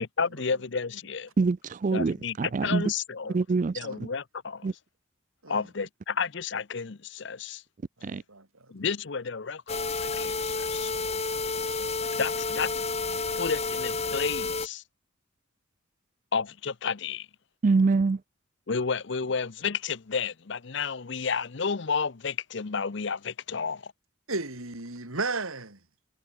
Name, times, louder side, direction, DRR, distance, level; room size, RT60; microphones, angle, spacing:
voice 1, 0.0-1.3 1.9-3.4 3.7-4.7 5.5-7.6 8.7-10.9 12.2-12.7 13.4-14.8 16.3-17.3 18.7-23.8, left 5 dB, 60° left, 0.7 m, -31 dB
voice 2, 1.4-2.8 3.3-3.8 4.6-4.7 8.0-8.2 17.6-18.2, right 4 dB, 35° right, 0.3 m, -24 dB
voice 3, 8.0-8.7 11.7-12.2 24.3-25.8, right 3 dB, 90° right, 4.7 m, -35 dB
sound 1, 9.7-14.7, left 3 dB, 30° left, 2.7 m, -30 dB
head